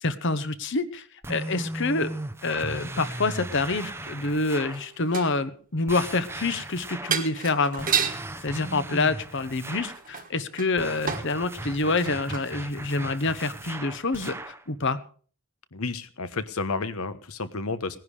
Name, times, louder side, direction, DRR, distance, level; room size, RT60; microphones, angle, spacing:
voice 1, 0.0-2.1 2.4-15.0, left 3 dB, 55° left, 12 dB, 1.1 m, -27 dB
sound 1, 1.2-4.9 5.9-7.3 7.8-10.1 10.8-14.6, right 1 dB, 10° right, 0.7 m, -37 dB
sound 2, 4.7-5.4 6.6-6.7 7.1-8.3 9.7-11.4 11.8-12.5 13.1-13.2, right 7 dB, 40° right, 1.4 m, -31 dB
voice 2, 15.7-18.0, left 3 dB, 75° left, 13 dB, 1.2 m, -31 dB
18.5 x 10.5 x 4.9 m, 0.43 s
head